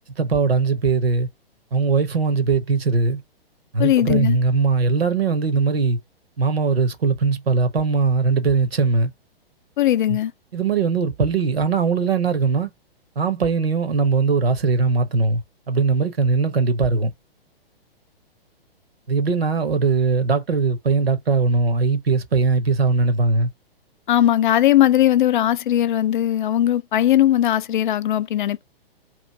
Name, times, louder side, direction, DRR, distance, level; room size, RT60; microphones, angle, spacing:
voice 1, 0.2-1.3 1.7-3.2 3.7-6.0 6.4-9.1 10.1-10.2 10.5-12.7 13.2-15.4 15.7-17.1 19.1-23.5, right 4 dB, 75° right, 0.9 m, -20 dB
voice 2, 3.8-4.4 9.8-10.3 24.1-28.6, left 12 dB, 55° left, 0.4 m, -18 dB
3.0 x 2.5 x 3.5 m
figure-of-eight pair, 115°, 30 cm